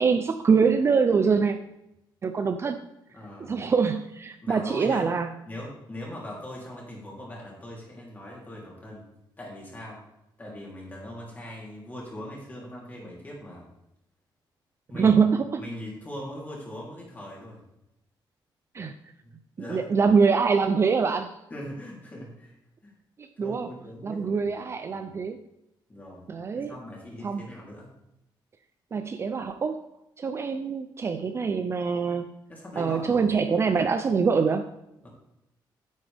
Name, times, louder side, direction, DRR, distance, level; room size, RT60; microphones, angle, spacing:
voice 1, 0.0-1.6 2.2-2.8 3.5-5.3 14.9-15.6 18.7-18.9 19.7-21.4 23.2-23.7 24.0-25.4 26.3-26.7 27.2-27.4 28.9-29.8 30.2-32.3 32.8-34.7, right 5 dB, 30° right, 8 dB, 0.5 m, -24 dB
voice 2, 3.1-3.5 4.4-5.1 5.4-9.1 9.4-10.0 10.4-13.7 14.9-15.2 15.6-17.6 19.2-19.9 21.5-22.6 22.8-22.9 23.4-24.5 24.9-25.1 25.9-26.3 26.5-27.9 32.5-33.3 35.0-35.1, left 1 dB, 20° left, -3 dB, 3.3 m, -40 dB
9.4 x 8.7 x 3.5 m, 0.86 s
cardioid pair, 145°, 8 cm